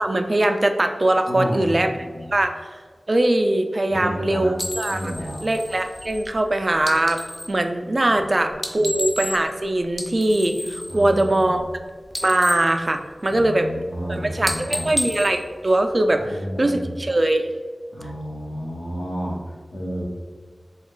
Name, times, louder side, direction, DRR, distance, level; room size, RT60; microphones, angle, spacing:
voice 1, 0.0-1.9 2.3-2.5 3.1-5.0 5.4-7.2 7.5-11.6 12.2-13.7 14.1-17.5, right 1 dB, 45° right, 6 dB, 0.3 m, -21 dB
voice 2, 1.3-2.3 3.9-4.5 4.9-5.4 8.1-9.0 10.9-11.6 13.3-14.9 16.1-17.0 17.9-20.0, equal, 80° left, -5 dB, 1.0 m, -32 dB
sound 1, 4.6-7.6 8.5-9.6 9.9-11.8 12.0-13.6 13.9-14.1 14.4-16.3, equal, 15° left, 0.5 m, -32 dB
3.9 x 2.3 x 3.7 m, 1.5 s
wide cardioid pair, 55°, 0 cm